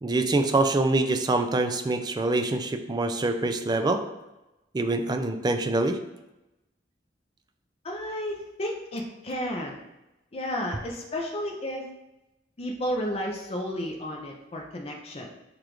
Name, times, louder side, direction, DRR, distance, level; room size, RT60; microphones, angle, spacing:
voice 1, 0.0-4.0 4.7-6.0, right 2 dB, 25° right, 6 dB, 0.3 m, -25 dB
voice 2, 7.8-9.8 10.3-11.8 12.6-15.3, equal, 35° left, 0 dB, 0.5 m, -32 dB
6.7 x 2.4 x 3.0 m, 0.97 s
head